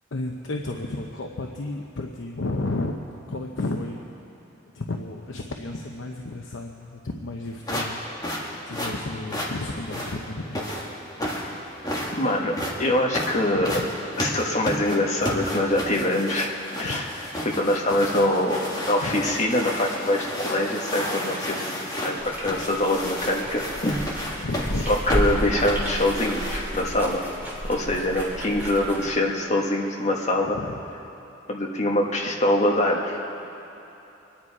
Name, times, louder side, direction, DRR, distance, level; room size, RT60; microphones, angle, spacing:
voice 1, 0.1-2.9 3.3-4.1 4.7-8.0 8.7-10.7 13.5-13.9 16.8-17.1 19.0-19.2 24.4-24.9 30.5-30.8, left 2 dB, 75° left, 2 dB, 0.8 m, -32 dB
sound 1, 7.6-26.8, left 1 dB, 20° left, 1.8 m, -32 dB
voice 2, 12.2-12.5 12.8-13.8 14.2-16.5 16.8-17.1 17.4-21.7 22.0-24.0 24.9-27.3 27.7-30.6 31.5-33.2, left 1 dB, 35° left, -1 dB, 1.5 m, -24 dB
Shaking Water, 22.2-29.1, equal, 10° right, 2.7 m, -32 dB
24.5 x 10.5 x 4.8 m, 3.0 s
head